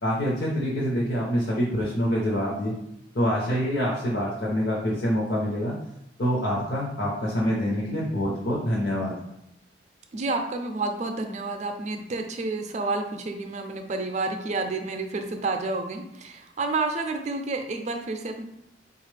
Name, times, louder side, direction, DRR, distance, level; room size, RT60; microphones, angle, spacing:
voice 1, 0.0-2.7 3.1-5.7 6.2-9.2, equal, 70° left, -5 dB, 0.8 m, -26 dB
voice 2, 10.1-18.4, right 3 dB, 40° right, 5 dB, 0.5 m, -30 dB
4.5 x 2.4 x 3.2 m, 0.82 s
head